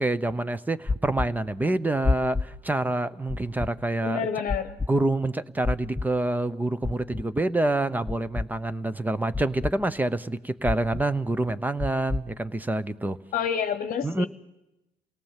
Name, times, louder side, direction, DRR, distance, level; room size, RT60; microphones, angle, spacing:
voice 1, 0.0-4.3 4.9-13.2 14.0-14.3, right 2 dB, 10° right, 15 dB, 0.8 m, -27 dB
sound 1, 0.9-1.3 2.0-2.5 3.3-3.7 4.5-4.9 5.6-6.1 6.8-7.2 8.1-8.5 9.3-9.7 10.6-11.0 11.8-12.2, left 3 dB, 15° left, 0.8 m, -27 dB
voice 2, 4.0-4.8 13.3-14.3, left 7 dB, 55° left, 9 dB, 1.0 m, -28 dB
28.5 x 18.0 x 7.4 m, 0.94 s
cardioid pair, 110°, 17 cm